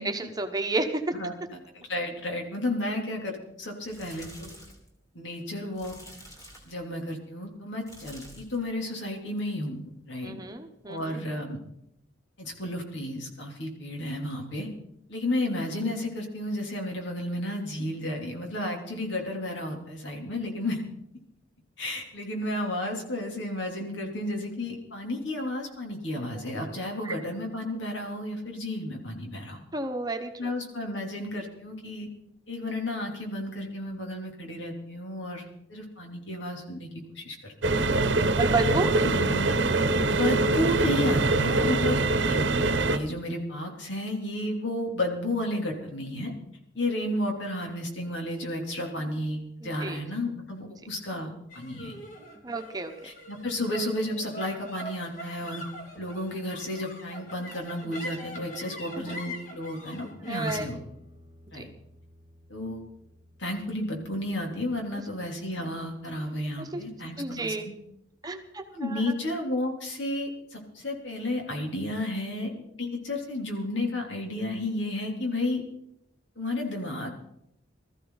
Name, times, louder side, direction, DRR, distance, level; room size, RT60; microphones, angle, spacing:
voice 1, 0.0-1.1 10.2-11.2 27.0-27.1 29.7-30.5 38.4-39.0 49.6-50.0 52.4-52.9 60.3-60.7 66.6-66.8 67.2-67.7 68.2-69.1, right 3 dB, 20° right, 5 dB, 1.0 m, -31 dB
voice 2, 1.7-4.5 5.1-5.9 6.7-10.3 10.9-11.6 12.4-14.7 15.1-20.8 21.8-29.6 30.4-32.1 32.5-37.5 38.0-38.2 39.0-39.6 40.0-42.0 42.3-46.3 46.7-52.0 53.0-55.6 56.0-60.8 61.5-61.7 62.5-62.8 63.4-67.7 68.7-75.6 76.4-77.2, left 1 dB, 75° left, 2 dB, 3.2 m, -32 dB
sound 1, 3.8-4.9 5.8-6.8 7.8-8.6 9.0-9.4 10.9-11.0, equal, 15° left, 3.2 m, -48 dB
sound 2, 37.6-43.0, right 2 dB, 70° right, 0.9 m, -24 dB
sound 3, 51.5-68.1, equal, 40° left, 2.4 m, -45 dB
20.0 x 14.0 x 4.0 m, 0.78 s
head